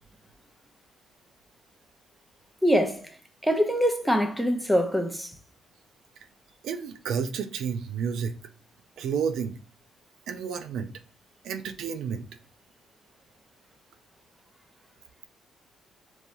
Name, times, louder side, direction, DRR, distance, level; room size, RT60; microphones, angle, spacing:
voice 1, 2.6-3.1 3.4-5.3, equal, ahead, 0.7 m, -24 dB
voice 2, 6.6-8.4 9.0-9.5 10.3-10.9 11.4-12.2, right 7 dB, 80° right, 0.4 m, -30 dB
5.3 x 3.1 x 2.6 m
cardioid pair, 90°, 0 cm